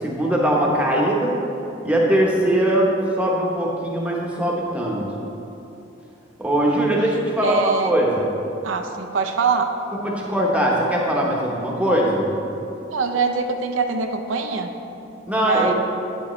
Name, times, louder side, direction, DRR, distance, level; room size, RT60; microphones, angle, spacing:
voice 1, 0.0-1.3 1.8-5.0 6.4-7.6 7.8-8.3 10.0-12.3 15.3-15.7, right 1 dB, 5° right, -3 dB, 0.9 m, -21 dB
voice 2, 7.4-8.0 8.6-9.7 12.9-14.7 15.4-15.7, right 5 dB, 85° right, 4 dB, 0.6 m, -23 dB
9.7 x 7.0 x 3.1 m, 2.9 s
head